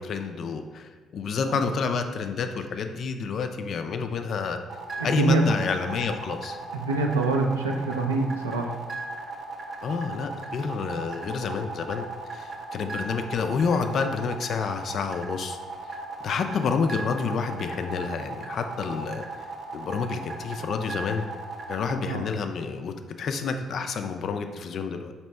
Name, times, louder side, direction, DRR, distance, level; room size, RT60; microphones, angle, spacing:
voice 1, 0.0-4.6 5.0-6.6 9.8-12.1 12.3-15.6 15.9-16.0 16.2-19.2 19.7-21.2 21.7-25.1, left 5 dB, 60° left, 7 dB, 0.3 m, -29 dB
sound 1, 4.7-22.0, right 3 dB, 50° right, 0.7 m, -37 dB
voice 2, 5.0-5.4 6.7-8.7 22.0-22.2, right 3 dB, 90° right, 2 dB, 0.3 m, -25 dB
4.2 x 2.9 x 3.2 m, 1.4 s
hypercardioid pair, 45°, 0 cm